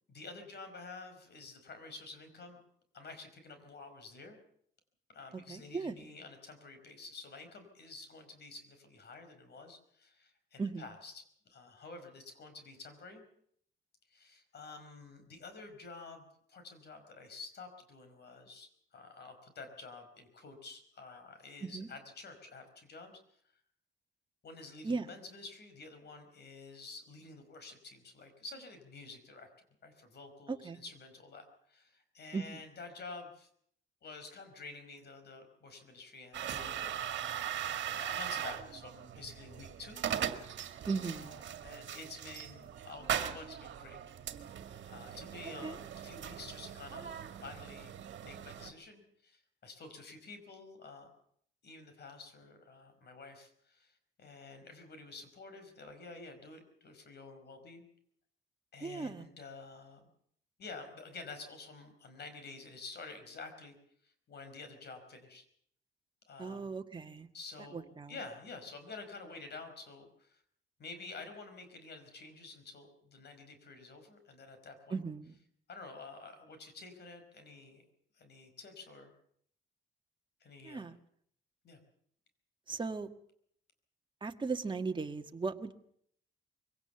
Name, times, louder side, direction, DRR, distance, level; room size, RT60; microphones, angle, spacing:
voice 1, 0.1-2.6 2.9-4.4 5.1-13.2 14.1-23.2 24.4-29.5 29.8-33.5 34.0-36.9 37.9-40.0 41.0-44.0 44.8-47.9 48.2-51.1 51.6-57.8 58.7-60.1 60.6-63.8 64.0-65.5 66.3-66.8 67.3-70.4 70.8-75.0 75.7-77.8 78.1-79.1 80.4-80.8 81.6-81.8, left 3 dB, 55° left, 8 dB, 5.1 m, -50 dB
voice 2, 5.5-6.0 10.6-10.9 21.6-21.9 24.8-25.1 30.5-30.8 32.3-32.4 40.9-41.4 45.6-45.8 58.8-59.3 66.4-67.3 67.7-68.1 74.9-75.4 80.6-80.9 82.7-83.1 84.2-85.7, right 4 dB, 25° right, 6 dB, 1.6 m, -37 dB
sound 1, 36.3-48.7, right 9 dB, 65° right, 1.9 m, -40 dB
23.0 x 17.5 x 7.0 m, 0.66 s
cardioid pair, 90°, 20 cm